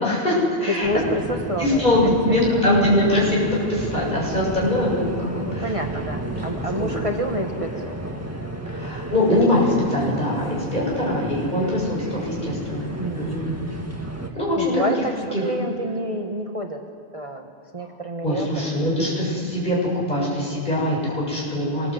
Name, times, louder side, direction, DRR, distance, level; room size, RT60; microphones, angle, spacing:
voice 1, 0.0-0.9 1.6-5.7 6.8-6.9 8.7-13.6 14.3-14.7 15.3-15.4 18.2-19.8 20.1-21.9, left 1 dB, 40° left, -4 dB, 7.3 m, -22 dB
sound 1, 0.8-14.3, right 1 dB, 15° right, 1.8 m, -32 dB
voice 2, 0.8-1.9 2.3-2.6 5.3-8.0 13.0-13.7 14.6-16.8 17.1-18.8, equal, 30° right, 2 dB, 1.3 m, -29 dB
25.0 x 21.0 x 7.9 m, 2.4 s
omnidirectional pair, 1.2 m